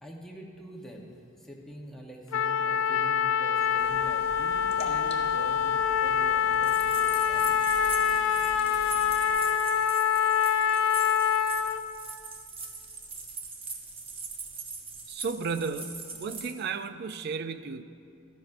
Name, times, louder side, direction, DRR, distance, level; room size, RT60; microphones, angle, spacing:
voice 1, 0.0-7.6, equal, ahead, -2 dB, 1.0 m, -45 dB
Trumpet, 2.3-11.8, left 8 dB, 70° left, 0.4 m, -25 dB
sound 1, 3.8-9.4, left 1 dB, 30° left, 0.8 m, -47 dB
sound 2, 6.6-16.5, right 4 dB, 30° right, 0.8 m, -41 dB
voice 2, 15.1-17.8, right 5 dB, 55° right, 11 dB, 0.4 m, -34 dB
13.5 x 10.0 x 2.6 m, 2.4 s
head